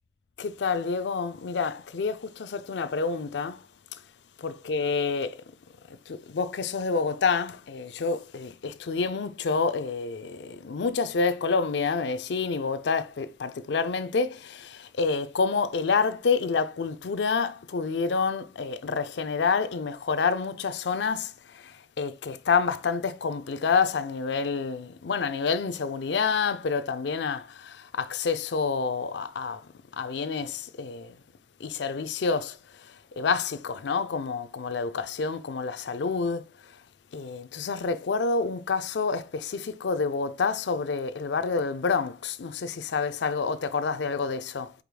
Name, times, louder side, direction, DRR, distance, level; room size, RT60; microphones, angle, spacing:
voice 1, 0.4-3.6 4.4-5.4 6.1-29.6 29.9-31.2 31.6-32.6 33.2-36.4 37.1-44.7, left 5 dB, 80° left, 0.5 m, -28 dB
5.0 x 4.7 x 2.2 m
head